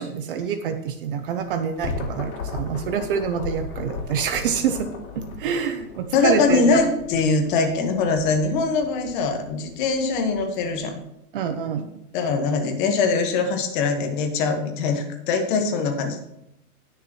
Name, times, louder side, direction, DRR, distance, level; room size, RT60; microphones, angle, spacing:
voice 1, 0.0-4.9 5.1-6.8 11.3-11.9, right 7 dB, 40° right, 8 dB, 0.7 m, -26 dB
sound 1, 1.5-10.9, left 4 dB, 65° left, 3.1 m, -37 dB
voice 2, 6.1-11.0 12.1-16.2, left 4 dB, 35° left, 4 dB, 1.5 m, -22 dB
19.0 x 6.7 x 3.1 m, 0.83 s
hypercardioid pair, 160°, 44 cm